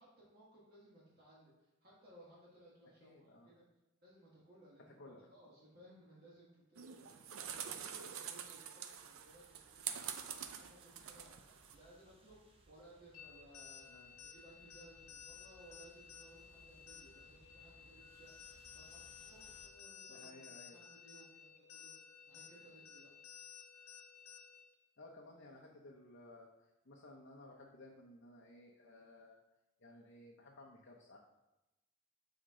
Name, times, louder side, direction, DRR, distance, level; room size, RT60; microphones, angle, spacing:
voice 1, 0.0-3.6 4.0-23.1, right 1 dB, 45° right, -6 dB, 1.5 m, -62 dB
voice 2, 3.0-3.5 5.0-5.3 13.9-14.1 20.1-20.8 25.0-29.4 29.8-31.2, left 2 dB, 55° left, -2 dB, 0.7 m, -57 dB
sound 1, 6.8-11.7, right 8 dB, 65° right, 0.5 m, -46 dB
sound 2, 8.9-19.7, right 1 dB, 25° right, 0.7 m, -67 dB
sound 3, 13.1-24.7, left 7 dB, 80° left, 1.0 m, -56 dB
6.5 x 4.4 x 3.7 m, 0.97 s
head